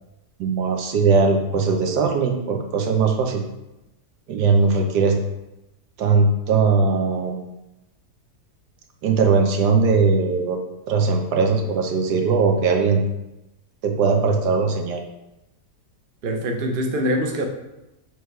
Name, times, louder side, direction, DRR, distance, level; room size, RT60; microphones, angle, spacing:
voice 1, 0.4-3.4 4.3-5.2 6.0-7.4 9.0-10.6 10.9-13.0 13.8-15.0, right 4 dB, 85° right, 3 dB, 1.4 m, -19 dB
voice 2, 16.2-17.5, equal, 45° right, 3 dB, 0.7 m, -24 dB
6.6 x 3.1 x 4.6 m, 0.94 s
omnidirectional pair, 1.7 m